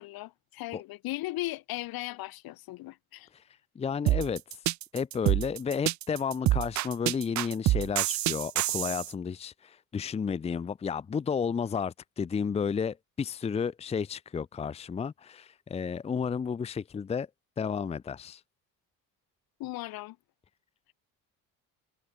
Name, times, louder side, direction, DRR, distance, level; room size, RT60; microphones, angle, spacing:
voice 1, 0.0-3.3 19.6-20.2, left 18 dB, 85° left, 6.6 m, -37 dB
voice 2, 3.8-4.4 4.9-17.3 17.6-18.4, left 6 dB, 20° left, 0.7 m, -32 dB
sound 1, 4.1-9.1, right 15 dB, 55° right, 0.9 m, -27 dB
cardioid pair, 175°, 35 cm